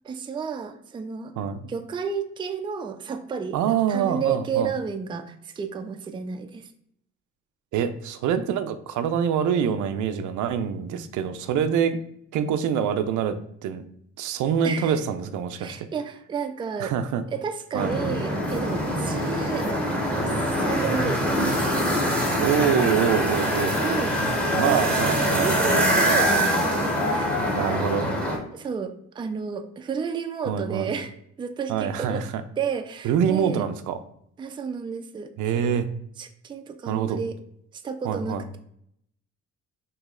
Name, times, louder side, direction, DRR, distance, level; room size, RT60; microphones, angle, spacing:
voice 1, 0.0-1.3 1.6-6.7 14.6-15.0 15.6-16.9 17.3-19.7 20.2-21.3 23.8-24.2 24.6-26.7 27.1-27.4 28.5-31.1 31.4-32.2 32.6-33.6 34.4-35.3 35.6-35.8 36.2-37.4 37.8-38.6, right 6 dB, 15° right, 7 dB, 0.3 m, -31 dB
voice 2, 3.5-4.7 7.7-12.0 12.3-13.4 13.6-13.8 14.2-15.9 16.8-17.2 17.7-17.9 22.4-23.8 24.5-25.5 27.5-28.1 30.5-30.9 31.7-32.4 33.0-34.0 35.4-35.9 36.9-37.2 38.0-38.4, right 8 dB, 80° right, 9 dB, 0.5 m, -25 dB
sound 1, 17.8-28.4, equal, 5° left, 0.9 m, -24 dB
3.1 x 2.7 x 3.6 m, 0.72 s
cardioid pair, 90°, 30 cm